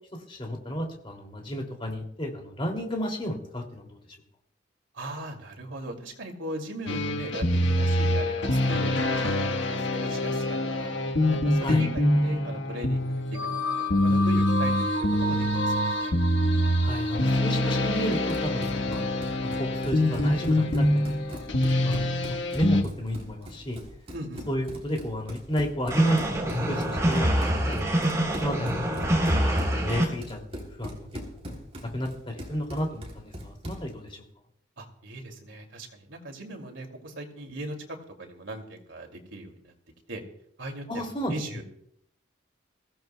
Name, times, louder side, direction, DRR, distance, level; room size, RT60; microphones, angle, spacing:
voice 1, 0.1-4.0 11.6-11.8 16.8-19.0 19.4-23.8 24.5-27.8 28.4-29.2 29.7-31.4 31.8-34.2 40.9-41.3, equal, 30° left, 2 dB, 2.7 m, -32 dB
voice 2, 4.9-10.9 11.3-13.4 13.6-14.9 15.2-16.2 24.1-24.4 34.8-37.8 38.2-39.7 40.1-40.2 40.6-41.6, right 1 dB, 90° right, 3 dB, 2.7 m, -39 dB
sound 1, 6.9-22.8, left 1 dB, 80° left, 1.4 m, -25 dB
Run, 18.1-33.9, equal, 30° right, 3.5 m, -41 dB
sound 2, 25.9-30.0, equal, 15° right, 3.6 m, -25 dB
23.0 x 16.0 x 2.3 m, 0.71 s
head